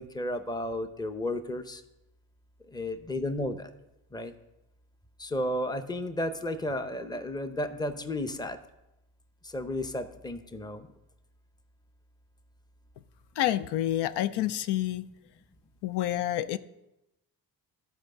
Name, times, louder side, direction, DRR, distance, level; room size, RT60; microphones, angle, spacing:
voice 1, 0.0-1.8 2.7-3.7 4.1-4.3 5.2-8.6 9.5-10.8, left 1 dB, 10° left, 9 dB, 0.6 m, -33 dB
voice 2, 13.4-15.1 15.8-16.6, left 13 dB, 85° left, 13 dB, 0.5 m, -28 dB
11.5 x 4.9 x 6.5 m, 0.92 s
cardioid pair, 95°, 39 cm